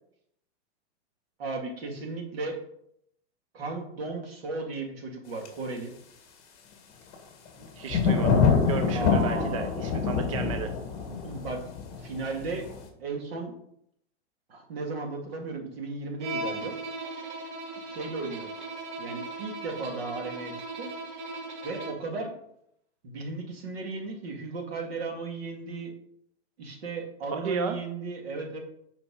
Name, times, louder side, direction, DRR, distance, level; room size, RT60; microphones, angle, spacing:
voice 1, 1.4-2.6 3.5-5.9 8.9-9.7 11.2-11.6 12.0-12.7 13.0-13.5 14.5-16.8 17.8-18.5 19.0-20.9 21.6-22.3 23.0-25.9 26.6-28.6, right 3 dB, 60° right, 1 dB, 2.4 m, -35 dB
sound 1, 5.4-5.5 7.1-7.2 7.5-7.6 7.9-12.8, left 5 dB, 35° left, 1.8 m, -25 dB
voice 2, 7.8-10.7 27.3-27.8, right 6 dB, 30° right, 6 dB, 0.4 m, -33 dB
Bowed string instrument, 16.2-22.1, right 2 dB, 90° right, 2.1 m, -37 dB
8.6 x 5.2 x 4.8 m, 0.73 s
supercardioid pair, 180°, 34 cm